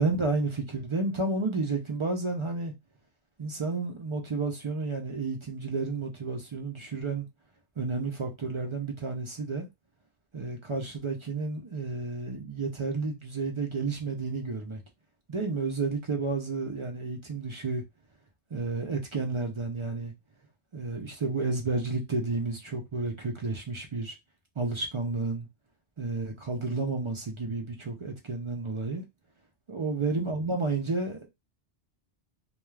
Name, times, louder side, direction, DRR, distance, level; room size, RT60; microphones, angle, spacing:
voice 1, 0.0-2.7 3.4-7.3 7.8-9.7 10.3-14.8 15.3-17.8 18.5-20.1 20.7-24.1 24.6-25.5 26.0-29.0 29.7-31.3, right 3 dB, 55° right, 0.3 m, -31 dB
2.3 x 2.3 x 3.1 m
omnidirectional pair, 1.1 m